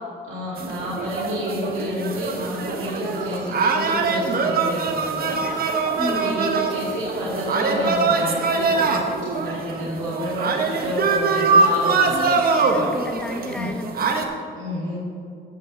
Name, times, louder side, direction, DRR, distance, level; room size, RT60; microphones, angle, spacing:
voice 1, 0.2-5.4 6.0-9.1 9.3-12.1 12.7-12.9 13.4-13.7 14.6-14.9, equal, 80° right, -7 dB, 2.2 m, -29 dB
sound 1, 0.6-14.2, right 4 dB, 50° right, 0.9 m, -23 dB
voice 2, 6.0-6.5 12.1-14.3, left 1 dB, 5° left, 3 dB, 0.8 m, -31 dB
15.0 x 6.3 x 3.1 m, 2.4 s
cardioid pair, 90°, 20 cm